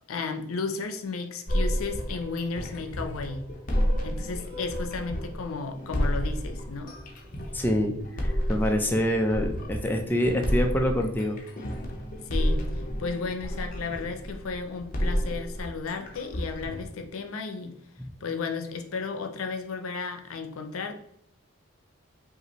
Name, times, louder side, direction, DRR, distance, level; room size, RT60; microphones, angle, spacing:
voice 1, 0.1-3.4 4.0-6.9 12.3-17.7 18.2-20.9, left 4 dB, 85° left, 5 dB, 0.6 m, -34 dB
sound 1, 1.5-16.8, equal, 40° left, 0.8 m, -31 dB
voice 2, 7.5-11.4, equal, 10° left, 2 dB, 0.4 m, -26 dB
5.4 x 2.5 x 3.0 m, 0.74 s
head